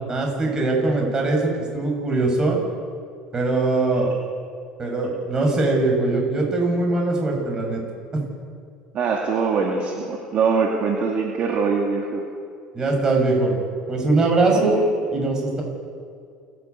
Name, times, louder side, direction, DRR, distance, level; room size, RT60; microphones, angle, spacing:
voice 1, 0.0-2.6 3.3-4.1 4.8-7.8 8.1-8.2 12.7-13.6 13.9-14.8 15.1-15.6, right 2 dB, 25° right, 1 dB, 6.8 m, -21 dB
voice 2, 8.9-12.2 14.5-14.9, right 5 dB, 50° right, 1 dB, 2.4 m, -23 dB
28.5 x 11.5 x 8.4 m, 2.3 s
supercardioid pair, 110°, 3 cm